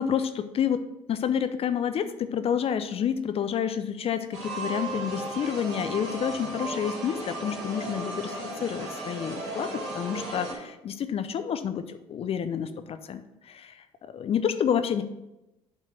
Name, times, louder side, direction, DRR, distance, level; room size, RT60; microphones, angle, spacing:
voice 1, 0.0-13.8 14.1-15.0, left 8 dB, 40° left, 10 dB, 0.6 m, -29 dB
sound 1, 4.3-10.5, right 2 dB, 70° right, 3.2 m, -35 dB
7.6 x 4.6 x 5.9 m, 0.92 s
figure-of-eight pair, 60°, 15 cm